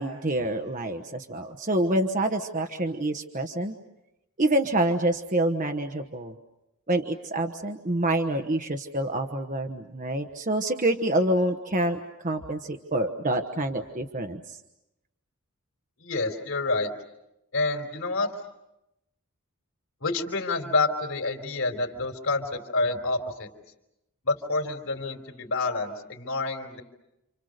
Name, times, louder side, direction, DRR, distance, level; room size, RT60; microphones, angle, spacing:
voice 1, 0.0-3.7 4.4-6.3 6.9-12.0 12.2-14.6, right 1 dB, 35° right, 6 dB, 1.2 m, -27 dB
voice 2, 16.0-16.9 17.5-18.3 20.0-23.5 24.2-26.8, left 3 dB, 60° left, 4 dB, 3.9 m, -28 dB
29.5 x 27.5 x 6.6 m, 0.89 s
head